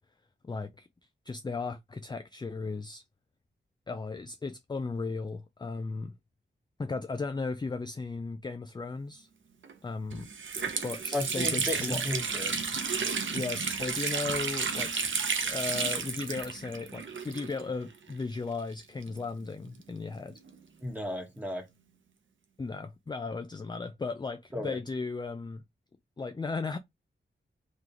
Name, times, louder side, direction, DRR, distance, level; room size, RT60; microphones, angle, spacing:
voice 1, 0.4-0.9 1.3-3.0 3.9-6.1 6.8-9.3 9.8-10.3 10.8-12.0 13.3-20.4 22.6-25.6 26.2-26.8, left 4 dB, 20° left, 0.4 m, -36 dB
Water tap faucet, 9.6-9.7 10.1-17.8 18.1-18.2 19.0-20.6, right 5 dB, 80° right, 0.9 m, -32 dB
voice 2, 11.1-12.5 20.8-21.6 24.5-24.8, left 2 dB, 10° right, 1.6 m, -34 dB
3.8 x 3.2 x 4.3 m
wide cardioid pair, 140°, 20 cm